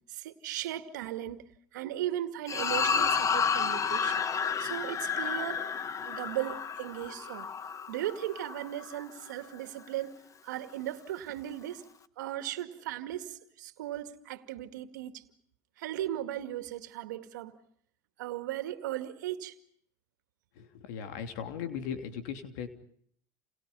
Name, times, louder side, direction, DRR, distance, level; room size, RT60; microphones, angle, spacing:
voice 1, 0.1-1.5 1.7-4.2 4.6-5.7 6.0-7.5 7.9-11.9 12.2-15.2 15.8-17.5 18.2-19.6, right 13 dB, 85° right, 2.2 m, -37 dB
sound 1, 2.5-9.0, left 6 dB, 35° left, 1.3 m, -31 dB
voice 2, 20.6-22.7, left 8 dB, 75° left, 3.1 m, -38 dB
29.5 x 29.0 x 5.6 m
hypercardioid pair, 90°, 10 cm